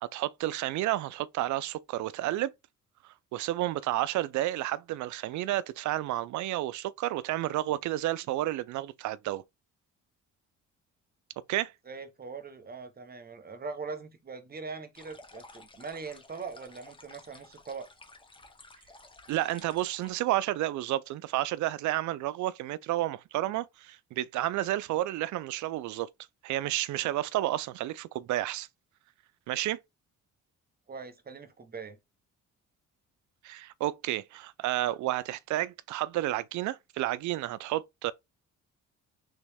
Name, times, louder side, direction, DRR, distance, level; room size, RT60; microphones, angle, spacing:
voice 1, 0.0-2.5 3.0-9.4 11.5-11.7 19.3-26.1 26.4-28.7 29.5-29.8 33.4-38.1, right 15 dB, 70° right, 0.4 m, -31 dB
voice 2, 11.9-17.9 30.9-32.0, right 4 dB, 30° right, 0.9 m, -41 dB
sound 1, 14.9-20.1, left 2 dB, 15° left, 1.0 m, -53 dB
3.5 x 3.1 x 3.4 m
cardioid pair, 90°, 30 cm